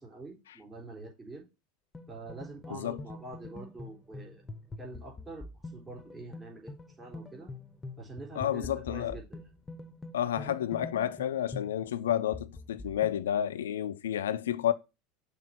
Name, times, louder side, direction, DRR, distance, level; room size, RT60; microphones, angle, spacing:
voice 1, 0.0-1.4 2.1-4.4 4.8-5.5 5.7-7.5 8.0-9.4 10.4-10.6, right 3 dB, 15° right, 3.9 m, -45 dB
sound 1, 1.9-13.2, left 2 dB, 15° left, 1.0 m, -45 dB
voice 2, 2.7-3.0 8.4-9.2 10.1-14.7, left 10 dB, 75° left, 0.5 m, -30 dB
6.3 x 3.6 x 5.9 m
figure-of-eight pair, 80°, 0 cm